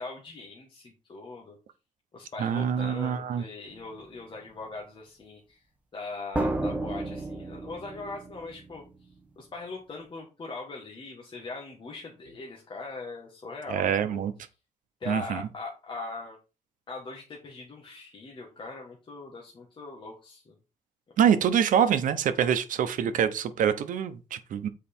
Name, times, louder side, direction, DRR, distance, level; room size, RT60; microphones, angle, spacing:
voice 1, 0.0-1.6 2.1-5.6 5.9-8.8 9.4-14.3 15.0-16.4 16.9-20.5, left 3 dB, 40° left, 1.6 m, -41 dB
voice 2, 2.4-3.4 13.7-14.3 15.1-15.4 21.2-24.7, right 8 dB, 85° right, 0.9 m, -25 dB
sound 1, 3.7-4.0 6.3-9.0, right 2 dB, 10° right, 1.0 m, -32 dB
7.4 x 4.7 x 4.4 m
wide cardioid pair, 145°, 13 cm